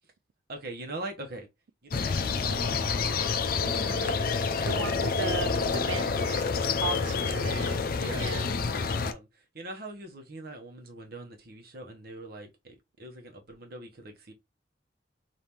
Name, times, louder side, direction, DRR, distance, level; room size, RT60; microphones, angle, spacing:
voice 1, 0.5-1.5 1.8-3.1 4.7-5.5 6.9-8.5 9.0-14.3, right 2 dB, 55° right, 1.1 m, -43 dB
sound 1, 1.9-9.1, left 5 dB, 50° left, 0.5 m, -28 dB
voice 2, 3.6-4.2 4.7-7.8 8.2-8.5, right 6 dB, 85° right, 0.3 m, -37 dB
5.4 x 2.7 x 3.0 m
head